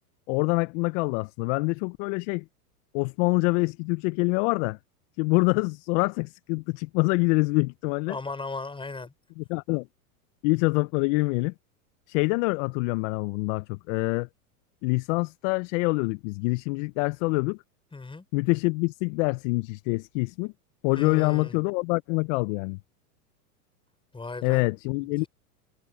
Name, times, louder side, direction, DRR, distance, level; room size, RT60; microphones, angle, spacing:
voice 1, 0.3-2.4 2.9-4.8 5.2-8.2 9.4-9.9 10.4-11.5 12.1-14.3 14.8-17.6 18.3-20.5 20.8-22.8 24.4-25.2, left 28 dB, 50° left, 1.0 m, -25 dB
voice 2, 8.1-9.1 17.9-18.2 20.9-21.6 24.1-24.6 25.2-25.3, left 3 dB, 10° left, 6.2 m, -36 dB
hypercardioid pair, 110°, 47 cm